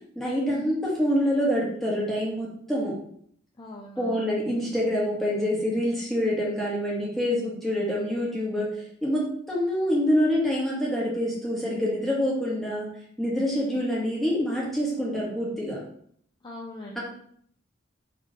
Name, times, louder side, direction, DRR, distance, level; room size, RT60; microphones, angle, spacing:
voice 1, 0.1-2.9 4.0-9.2 9.5-12.9 13.2-15.8 16.9-17.0, equal, ahead, -5 dB, 1.3 m, -26 dB
voice 2, 3.6-4.3 16.4-17.0, left 2 dB, 25° left, -3 dB, 0.5 m, -41 dB
4.2 x 3.1 x 4.0 m, 0.65 s
head